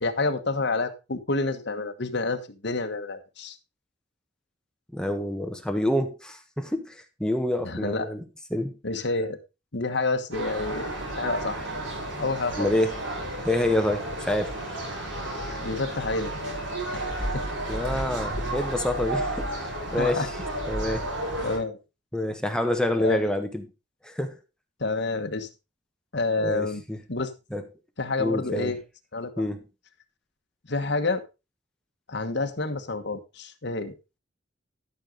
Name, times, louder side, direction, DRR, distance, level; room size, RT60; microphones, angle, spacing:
voice 1, 0.0-3.6 7.6-8.1 8.8-9.4 9.7-11.6 12.2-12.7 15.6-16.3 16.9-17.0 17.3-17.4 20.0-20.3 21.4-21.8 23.0-23.3 24.8-25.5 26.1-26.8 27.1-27.3 28.0-28.8 29.1-29.5 30.7-31.2 32.1-33.9, left 3 dB, 65° left, 1.4 m, -28 dB
voice 2, 4.9-8.2 8.5-8.7 12.6-13.0 13.4-14.5 17.7-20.3 20.7-21.1 22.1-23.7 24.0-24.4 26.4-27.0 27.5-27.6 28.2-28.7 29.4-29.6, left 1 dB, 5° left, 1.1 m, -27 dB
sound 1, 10.3-21.6, right 1 dB, 80° right, 5.7 m, -32 dB
12.5 x 6.4 x 3.9 m
head